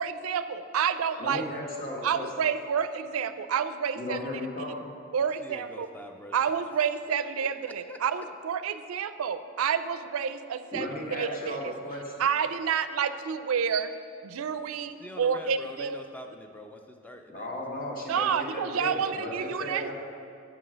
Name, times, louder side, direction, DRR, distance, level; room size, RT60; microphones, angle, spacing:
voice 1, 0.0-1.4 2.0-4.2 5.1-5.9 6.3-11.7 12.2-13.9 14.2-16.0 18.1-19.9, right 7 dB, 80° right, 12 dB, 0.4 m, -29 dB
voice 2, 1.2-2.3 3.9-4.9 10.7-12.3 17.3-19.9, left 1 dB, 40° left, -2 dB, 1.4 m, -36 dB
voice 3, 5.4-6.4 6.7-6.8 7.4-8.0 14.9-17.9, left 1 dB, 5° left, 4 dB, 0.4 m, -45 dB
7.5 x 6.0 x 6.2 m, 2.4 s
head